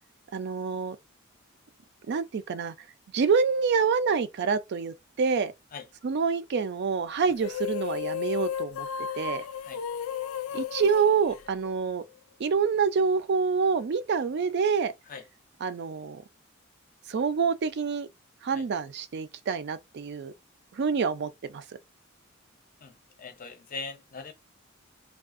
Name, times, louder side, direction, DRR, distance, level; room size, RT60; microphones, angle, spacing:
voice 1, 0.3-1.0 2.1-2.7 3.1-5.5 6.0-8.9 9.1-9.5 10.5-12.0 12.4-14.9 15.6-16.2 17.1-18.1 18.4-20.3 20.7-21.6, right 5 dB, 55° right, 0.4 m, -27 dB
sound 1, 7.3-12.0, left 9 dB, 90° left, 0.4 m, -34 dB
voice 2, 23.2-24.3, left 4 dB, 40° left, 0.6 m, -40 dB
3.4 x 2.4 x 2.4 m
head